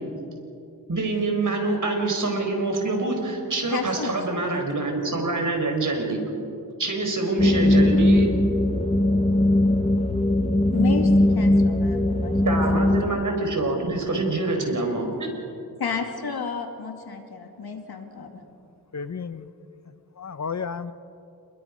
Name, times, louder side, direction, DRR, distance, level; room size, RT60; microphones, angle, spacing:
voice 1, 0.9-6.2 6.8-8.3 12.4-15.5, right 2 dB, 55° right, 2 dB, 4.7 m, -25 dB
voice 2, 3.7-4.4 9.3-9.4 10.7-12.8 13.1-13.2 15.8-18.3, left 5 dB, 90° left, 3 dB, 2.5 m, -32 dB
sound 1, 7.4-13.0, left 1 dB, 15° left, 1.5 m, -20 dB
voice 3, 18.9-19.5 20.2-20.9, left 6 dB, 50° left, 12 dB, 0.8 m, -32 dB
28.0 x 21.5 x 5.3 m, 2.6 s
wide cardioid pair, 85°, 36 cm